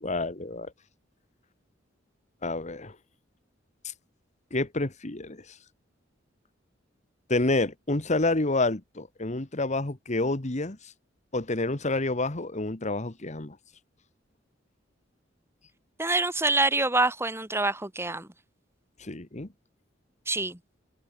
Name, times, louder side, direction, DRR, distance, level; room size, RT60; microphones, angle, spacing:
voice 1, 0.0-0.7 2.4-2.9 3.8-3.9 4.5-5.6 7.3-10.9 11.3-13.6 19.0-19.5, left 2 dB, 40° left, 1.7 m, -28 dB
voice 2, 16.0-18.3 20.3-20.6, right 2 dB, 15° right, 2.3 m, -26 dB
head